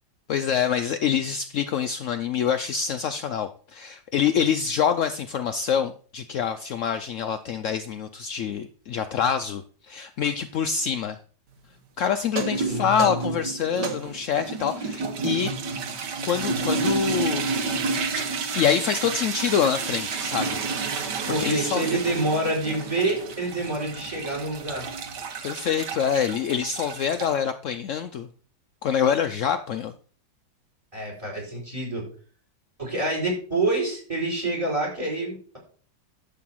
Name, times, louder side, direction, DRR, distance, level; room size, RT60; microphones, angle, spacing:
voice 1, 0.3-11.2 12.0-15.5 16.3-17.5 18.5-20.5 21.3-22.0 25.4-28.3 28.8-29.9, left 7 dB, 75° left, 9 dB, 0.7 m, -26 dB
sound 1, 12.2-27.3, right 4 dB, 70° right, 1.8 m, -30 dB
voice 2, 12.6-13.0 21.3-24.9 30.9-32.0 32.8-35.6, right 2 dB, 15° right, -1 dB, 4.6 m, -27 dB
11.0 x 3.9 x 7.7 m, 0.43 s
omnidirectional pair, 1.9 m